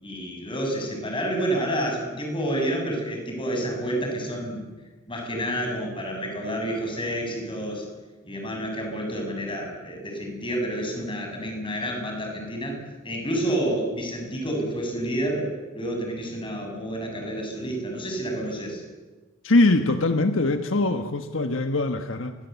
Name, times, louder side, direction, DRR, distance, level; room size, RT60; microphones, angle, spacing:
voice 1, 0.0-4.7 5.1-7.9 8.2-12.8 13.0-15.5 15.7-18.8, right 1 dB, 25° left, 2 dB, 7.7 m, -29 dB
voice 2, 19.4-22.3, left 2 dB, 70° left, 7 dB, 1.4 m, -22 dB
29.5 x 23.0 x 8.3 m, 1.3 s
head